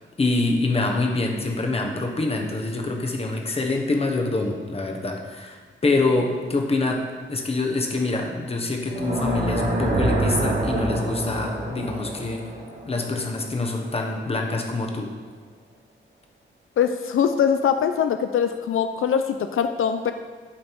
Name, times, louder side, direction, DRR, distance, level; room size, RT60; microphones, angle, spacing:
voice 1, 0.2-12.4 12.9-15.1, left 2 dB, 30° left, 2 dB, 1.0 m, -25 dB
sound 1, 8.8-13.9, right 1 dB, 50° right, 2.2 m, -26 dB
voice 2, 16.8-20.1, left 8 dB, 85° left, 8 dB, 0.5 m, -22 dB
11.5 x 5.2 x 4.6 m, 1.5 s
wide cardioid pair, 170°, 21 cm